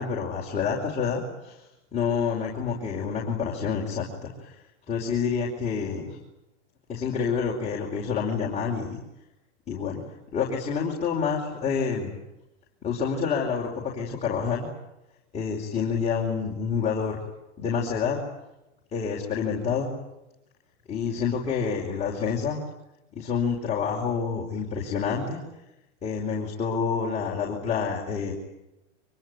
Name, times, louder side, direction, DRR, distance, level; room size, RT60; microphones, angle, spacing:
voice 1, 0.0-1.6 1.9-4.6 4.9-6.1 6.9-9.0 9.7-10.0 10.3-12.1 12.8-14.7 15.3-17.2 17.6-18.2 18.9-19.9 20.9-22.6 23.1-25.4 26.0-28.3, left 6 dB, 20° left, -3 dB, 5.0 m, -28 dB
25.0 x 24.0 x 9.4 m, 0.91 s
supercardioid pair, 145°, 35 cm